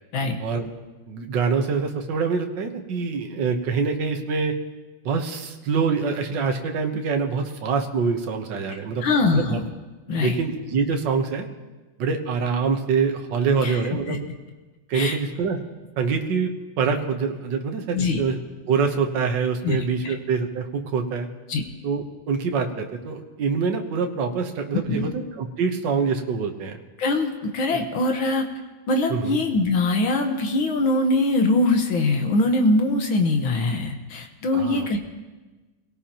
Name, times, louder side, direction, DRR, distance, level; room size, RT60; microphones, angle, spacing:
voice 1, 1.1-4.5 5.1-9.6 10.2-11.5 12.0-14.3 14.9-15.6 16.0-16.5 16.8-18.4 18.7-21.3 21.8-26.8 27.7-27.8 29.1-29.4 34.5-34.9, right 5 dB, 65° right, 4 dB, 1.8 m, -25 dB
voice 2, 9.0-9.6 10.1-10.4 13.6-13.8 14.1-14.2 14.9-15.2 17.9-18.2 19.6-19.8 20.0-20.1 21.5-21.6 24.9-25.1 27.0-28.5 28.9-35.0, left 2 dB, 85° left, 4 dB, 2.1 m, -22 dB
27.0 x 17.5 x 3.0 m, 1.2 s
omnidirectional pair, 2.1 m